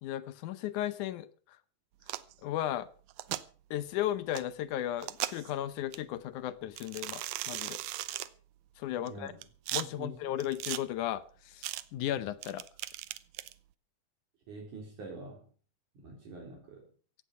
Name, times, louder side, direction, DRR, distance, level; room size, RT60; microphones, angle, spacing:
voice 1, 0.0-1.6 2.4-2.9 3.7-7.8 8.8-9.3 9.7-12.7, left 12 dB, 75° left, 15 dB, 2.1 m, -35 dB
sound 1, 2.0-2.3 3.1-3.4 4.3-4.4 5.0-5.5 5.9-6.0 6.8-8.3 9.1-9.8 10.4-10.8 11.6-11.8 12.4-13.5, right 15 dB, 75° right, 1.7 m, -37 dB
voice 2, 14.5-15.4 16.0-16.8, right 3 dB, 60° right, -2 dB, 4.9 m, -45 dB
16.5 x 10.5 x 5.7 m, 0.42 s
omnidirectional pair, 4.0 m